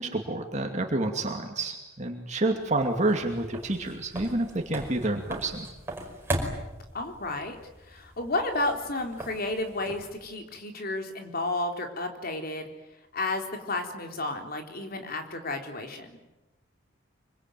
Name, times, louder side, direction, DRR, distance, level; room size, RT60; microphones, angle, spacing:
voice 1, 0.0-5.7, right 2 dB, 35° right, 3 dB, 2.4 m, -29 dB
sound 1, 2.6-10.3, right 1 dB, 10° right, 5.2 m, -38 dB
voice 2, 6.9-12.7 13.1-16.2, left 2 dB, 50° left, 4 dB, 3.8 m, -32 dB
26.0 x 24.5 x 9.2 m, 1.0 s
head